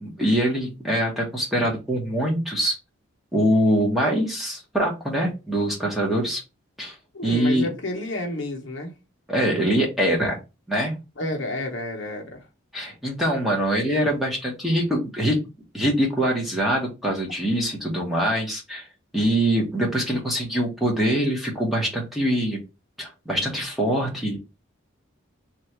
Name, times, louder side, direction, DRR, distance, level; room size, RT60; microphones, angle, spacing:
voice 1, 0.0-2.8 3.3-6.4 6.8-7.0 7.2-7.7 9.3-10.4 10.7-10.9 12.7-15.4 15.7-18.9 19.1-22.6 23.0-24.4, right 1 dB, ahead, 1.0 m, -23 dB
voice 2, 7.1-8.9 11.2-12.4, left 1 dB, 60° left, 0.9 m, -30 dB
3.1 x 2.5 x 4.3 m
head